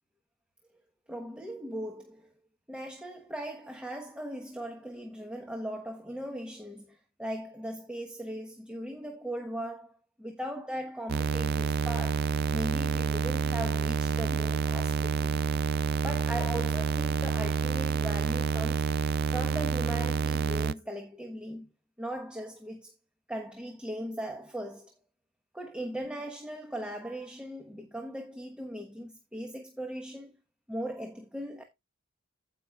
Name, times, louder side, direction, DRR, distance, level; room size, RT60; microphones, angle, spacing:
voice 1, 1.1-2.3 2.7-15.4 16.0-18.9 19.3-21.7 22.0-22.9 23.3-24.9 25.5-30.3 30.7-31.6, right 1 dB, 5° right, 1.2 m, -38 dB
sound 1, 11.1-20.7, right 5 dB, 50° right, 0.4 m, -28 dB
16.0 x 5.6 x 2.3 m
head